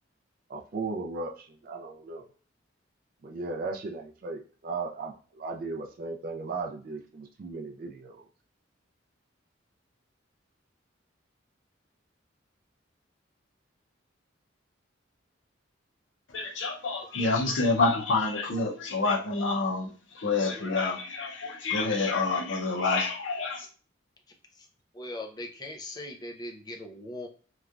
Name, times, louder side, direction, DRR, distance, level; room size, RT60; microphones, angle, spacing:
voice 1, 0.5-2.3 3.2-8.2, right 3 dB, 45° right, 0.3 m, -36 dB
voice 2, 16.3-23.7, left 3 dB, 70° left, 0.6 m, -28 dB
voice 3, 24.9-27.3, left 1 dB, 20° left, 0.4 m, -40 dB
3.1 x 2.2 x 2.4 m
head